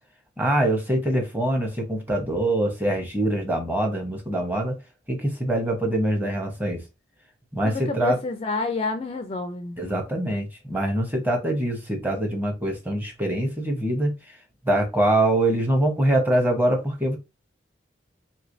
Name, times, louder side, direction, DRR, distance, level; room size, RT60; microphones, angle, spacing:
voice 1, 0.4-4.8 5.1-6.8 7.5-8.2 9.8-14.1 14.6-17.2, right 1 dB, 10° right, 0.8 m, -24 dB
voice 2, 7.6-9.8, left 3 dB, 30° left, 0.3 m, -29 dB
3.3 x 3.1 x 2.6 m
head